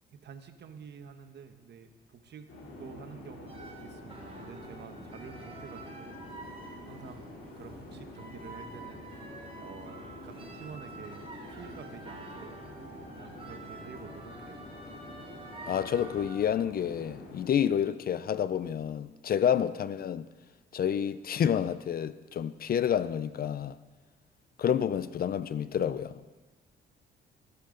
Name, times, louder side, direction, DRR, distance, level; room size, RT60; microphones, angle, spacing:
voice 1, 0.1-2.5 2.8-6.2 6.8-9.0 9.6-12.6 13.2-14.7, right 6 dB, 60° right, 1.1 m, -49 dB
sound 1, 2.5-17.5, left 1 dB, 75° left, 3.1 m, -47 dB
sound 2, 3.5-16.4, right 3 dB, 30° right, 2.5 m, -48 dB
voice 2, 15.7-20.3 20.7-23.8 24.6-26.2, left 9 dB, 50° left, 0.5 m, -29 dB
17.5 x 10.0 x 3.9 m
cardioid pair, 90°, 20 cm